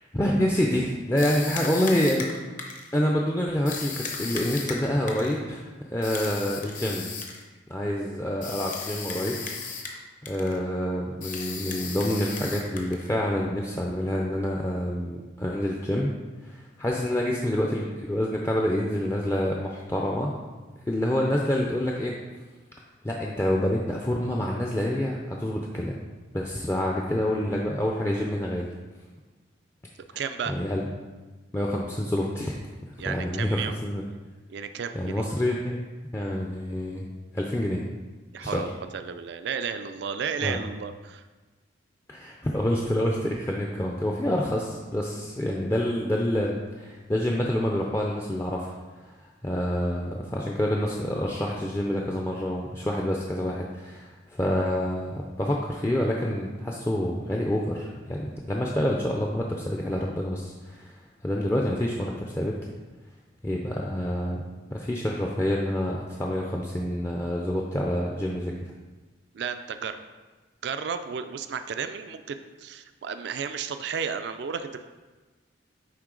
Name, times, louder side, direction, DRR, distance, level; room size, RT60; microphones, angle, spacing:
voice 1, 0.0-2.3 2.9-7.1 7.7-9.4 10.2-16.2 16.4-20.3 20.9-22.2 23.0-26.0 26.3-28.7 30.1-30.2 30.5-30.8 31.5-32.6 33.0-34.0 34.9-35.8 36.1-37.0 37.3-37.8 38.4-38.7 40.4-40.6 42.1-48.7 49.0-60.9 61.2-62.6 63.4-64.4 64.7-68.5, left 1 dB, 15° left, -1 dB, 0.4 m, -27 dB
sound 1, 1.2-2.9 3.7-5.4 6.0-7.4 8.4-10.0 10.3-10.6 11.2-13.1, left 5 dB, 40° left, 0.8 m, -36 dB
voice 2, 30.2-30.5 33.0-33.7 34.5-35.3 38.3-41.2 69.3-70.0 70.6-74.8, right 6 dB, 60° right, 9 dB, 0.3 m, -33 dB
9.5 x 3.6 x 3.8 m, 1.3 s
head